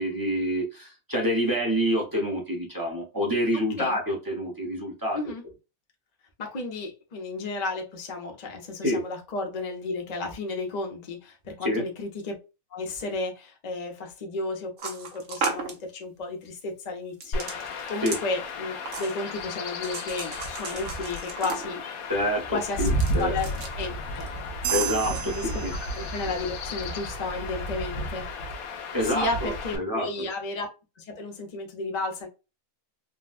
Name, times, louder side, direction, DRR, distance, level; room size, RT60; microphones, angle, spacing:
voice 1, 0.0-5.2 8.8-9.0 11.6-11.8 18.0-18.1 22.1-23.3 24.7-25.3 25.6-25.7 28.9-30.3, equal, 15° right, 0.9 m, -27 dB
voice 2, 6.4-12.4 12.7-21.8 22.5-22.9 23.2-24.3 25.1-25.7 25.9-28.2 29.0-30.7 31.0-32.3, left 3 dB, 35° left, 0.8 m, -33 dB
sound 1, 14.8-15.8 17.2-18.2 18.8-19.4 19.8-21.9 22.7-23.8 24.2-24.3 24.6-25.2, right 4 dB, 60° right, 1.1 m, -35 dB
Chirp tweet / Wind / Stream, 17.3-29.8, left 1 dB, 90° left, 1.2 m, -33 dB
sound 2, 24.6-26.5, right 11 dB, 85° right, 1.1 m, -33 dB
3.8 x 2.2 x 2.4 m
omnidirectional pair, 1.5 m